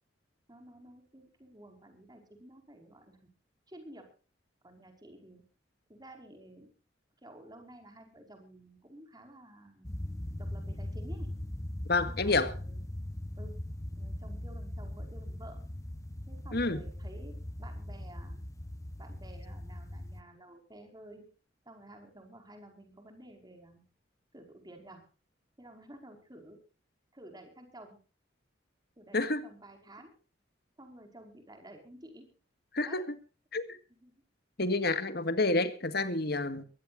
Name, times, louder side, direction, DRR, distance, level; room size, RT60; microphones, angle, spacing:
voice 1, 0.5-3.2 3.7-4.1 4.6-5.4 5.9-6.7 7.2-9.9 10.4-11.3 12.0-12.8 13.4-13.5 14.0-15.6 16.3-18.4 19.0-21.2 21.6-23.8 24.3-25.0 25.6-26.6 27.1-28.0 29.0-30.2 30.8-32.3 32.9-33.1 34.0-34.1 36.5-36.7, right 1 dB, 20° right, 4 dB, 5.1 m, -52 dB
sound 1, 9.8-20.2, left 1 dB, 15° left, 0.9 m, -40 dB
voice 2, 11.9-12.5 16.5-16.8 29.1-29.5 32.7-33.1 33.5-33.8 34.6-36.6, left 2 dB, 55° left, 10 dB, 2.0 m, -29 dB
23.5 x 16.5 x 2.6 m, 0.36 s
head